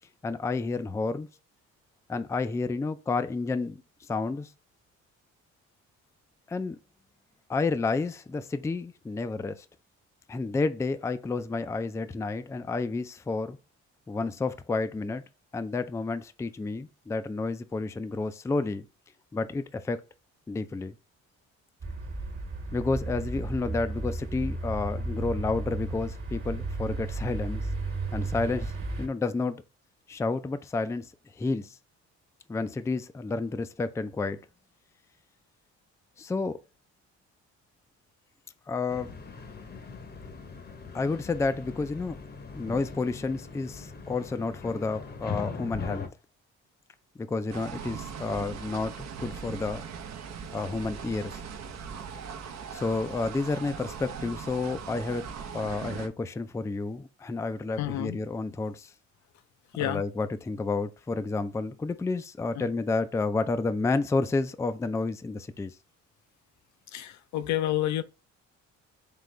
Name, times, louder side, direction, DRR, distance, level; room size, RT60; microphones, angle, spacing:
voice 1, 0.2-1.3 2.1-3.8 4.1-4.5 6.5-6.8 7.5-9.7 10.3-13.6 14.1-15.2 15.5-18.9 19.3-20.0 20.5-20.9 22.7-27.6 28.1-28.7 29.0-29.6 30.1-31.1 31.4-31.8 32.5-34.4 36.2-36.6 38.7-39.2 40.9-42.2 42.5-46.1 47.2-49.8 50.5-51.4 52.7-55.3 55.5-58.9 59.8-65.7, left 3 dB, 10° left, 0.3 m, -30 dB
sound 1, 21.8-29.1, right 2 dB, 45° right, 1.3 m, -34 dB
sound 2, 38.9-46.1, left 5 dB, 35° left, 0.8 m, -40 dB
sound 3, 47.5-56.1, right 6 dB, 65° right, 0.7 m, -40 dB
voice 2, 57.8-58.2 59.7-60.0 62.5-62.7 66.9-68.0, left 13 dB, 70° left, 0.5 m, -29 dB
3.8 x 3.3 x 3.1 m
cardioid pair, 90°, 30 cm